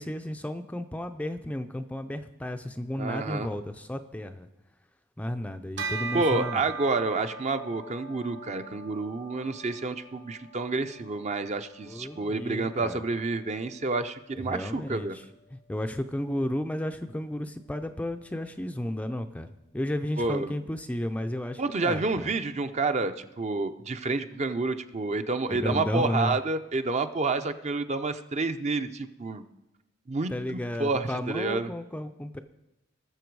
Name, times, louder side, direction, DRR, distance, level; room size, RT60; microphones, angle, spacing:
voice 1, 0.0-4.5 5.2-6.6 11.9-13.0 14.3-15.2 15.5-19.5 19.7-22.3 25.5-26.4 30.3-32.4, left 1 dB, 5° left, 7 dB, 0.4 m, -33 dB
voice 2, 3.0-3.5 6.1-15.2 20.2-20.5 21.6-29.4 30.1-31.7, right 3 dB, 35° right, 9 dB, 0.6 m, -29 dB
Bell, 5.8-15.5, right 4 dB, 65° right, 1.1 m, -42 dB
19.5 x 6.9 x 4.7 m, 0.93 s
head